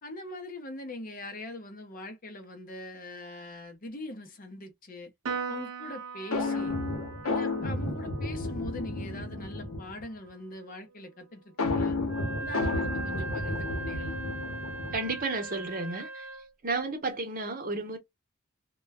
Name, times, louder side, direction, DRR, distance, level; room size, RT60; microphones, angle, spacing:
voice 1, 0.0-5.1 5.5-6.7 7.2-12.0 12.4-14.2, left 1 dB, 40° left, 0.6 m, -42 dB
Piano, 5.2-11.9, right 5 dB, 80° right, 0.5 m, -42 dB
sound 1, 6.3-10.0 11.6-15.2, left 2 dB, 90° left, 0.8 m, -32 dB
Wind instrument woodwind instrument, 12.0-16.5, right 3 dB, 10° right, 0.8 m, -39 dB
voice 2, 14.9-16.3 16.6-18.0, right 3 dB, 40° right, 0.8 m, -32 dB
2.2 x 2.1 x 3.3 m
head